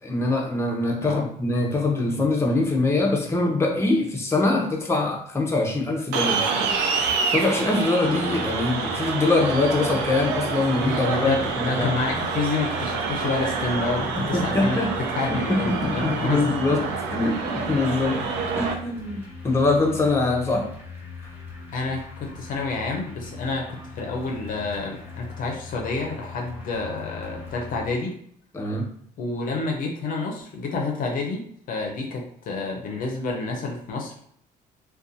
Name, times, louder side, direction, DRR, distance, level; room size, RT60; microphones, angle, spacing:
voice 1, 0.0-6.8 7.3-11.9 14.2-14.9 15.3-18.2 18.6-20.7 28.5-28.9, left 2 dB, 15° left, -1 dB, 0.6 m, -23 dB
sound 1, 6.1-18.7, right 5 dB, 85° right, 0.4 m, -27 dB
sound 2, 8.0-27.9, left 4 dB, 10° right, 0.9 m, -40 dB
voice 2, 10.8-14.8 15.1-16.4 21.7-28.1 29.2-31.4 31.7-34.2, left 3 dB, 55° left, 1 dB, 0.5 m, -29 dB
2.6 x 2.2 x 2.5 m, 0.66 s
cardioid pair, 110°, 17 cm